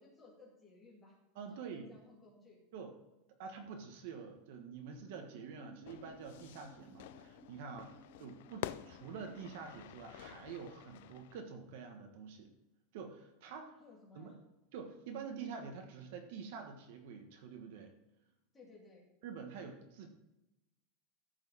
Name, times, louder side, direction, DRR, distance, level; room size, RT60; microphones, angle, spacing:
voice 1, 0.0-1.2 1.5-2.6 7.9-8.5 13.8-14.4 18.5-19.1, left 3 dB, 15° left, -3 dB, 2.6 m, -59 dB
voice 2, 1.3-1.9 2.7-2.9 3.4-12.5 12.9-13.8 14.1-14.3 14.7-17.9 19.2-20.1, right 5 dB, 60° right, 4 dB, 1.3 m, -47 dB
sound 1, 4.6-9.6, right 1 dB, 20° right, 0.8 m, -61 dB
Fire / Fireworks, 5.9-11.4, left 14 dB, 65° left, 0.4 m, -49 dB
14.0 x 4.8 x 4.2 m, 0.94 s
supercardioid pair, 165°, 0 cm